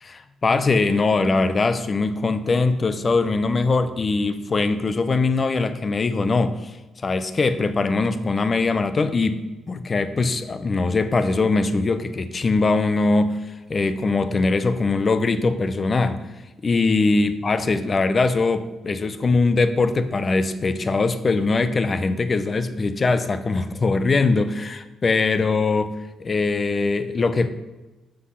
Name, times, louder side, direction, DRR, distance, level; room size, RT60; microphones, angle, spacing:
voice 1, 0.0-6.7 7.0-13.4 13.7-16.2 16.6-25.9 26.2-27.5, left 3 dB, 35° left, 12 dB, 0.7 m, -21 dB
7.6 x 6.2 x 5.7 m, 1.1 s
cardioid pair, 90°, 0 cm